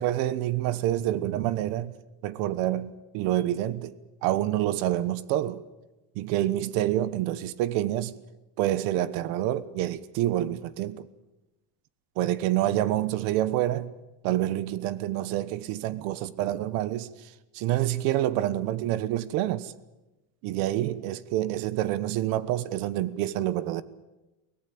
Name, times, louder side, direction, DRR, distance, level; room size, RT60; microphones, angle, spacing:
voice 1, 0.0-1.9 2.2-3.9 4.2-5.6 6.1-8.2 8.6-11.1 12.2-13.9 14.2-17.1 17.5-19.7 20.4-23.8, right 13 dB, 65° right, 1.2 m, -27 dB
24.0 x 18.0 x 8.6 m
cardioid pair, 165°, 38 cm